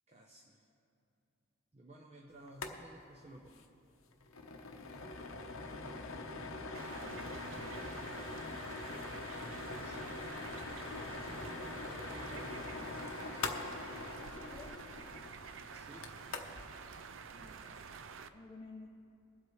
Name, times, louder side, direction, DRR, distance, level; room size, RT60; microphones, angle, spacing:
voice 1, 0.1-0.6 1.7-3.7 9.4-10.5 11.0-12.7 15.6-16.3, right 1 dB, 30° right, 0 dB, 0.7 m, -55 dB
sound 1, 2.5-2.8 3.0-3.1 3.4-3.6 4.0-16.7, left 3 dB, 75° left, 0.9 m, -43 dB
sound 2, 6.7-18.3, right 5 dB, 65° right, 0.4 m, -49 dB
voice 2, 14.2-14.9 17.3-17.8 18.3-18.9, left 2 dB, 20° left, -1 dB, 0.5 m, -53 dB
23.0 x 7.9 x 3.2 m, 2.6 s
head